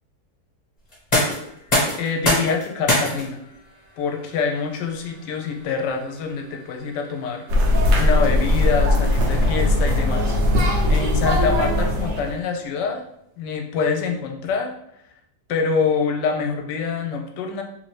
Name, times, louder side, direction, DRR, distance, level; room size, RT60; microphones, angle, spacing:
sound 1, 0.9-12.7, left 1 dB, 25° left, 1.1 m, -29 dB
voice 1, 2.0-3.4 4.0-7.4 8.0-10.3 10.9-13.0 13.4-14.7 15.5-17.6, left 5 dB, 75° left, 3 dB, 1.1 m, -25 dB
sound 2, 7.5-12.3, left 1 dB, 85° right, 1.4 m, -19 dB
3.3 x 2.6 x 3.2 m, 0.76 s
omnidirectional pair, 1.9 m